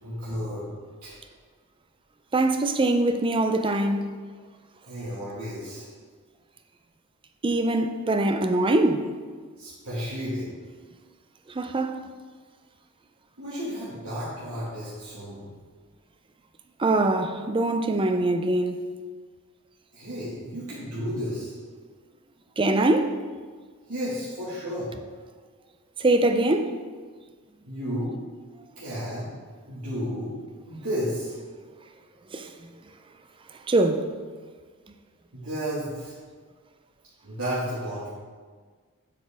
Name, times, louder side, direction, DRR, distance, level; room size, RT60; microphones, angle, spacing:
voice 1, 0.0-0.7 1.0-1.2 4.9-5.9 9.6-10.6 13.4-15.5 19.9-21.5 23.9-24.9 27.7-28.1 28.8-29.3 29.7-30.3 30.6-31.3 35.3-36.1 37.2-38.1, equal, 70° right, 2.0 m, -32 dB
voice 2, 2.3-4.0 7.4-9.1 11.5-12.0 16.8-18.8 22.6-23.2 26.0-26.8 32.3-32.5 33.7-34.1, right 2 dB, 20° right, 0.4 m, -23 dB
8.0 x 7.2 x 3.5 m
head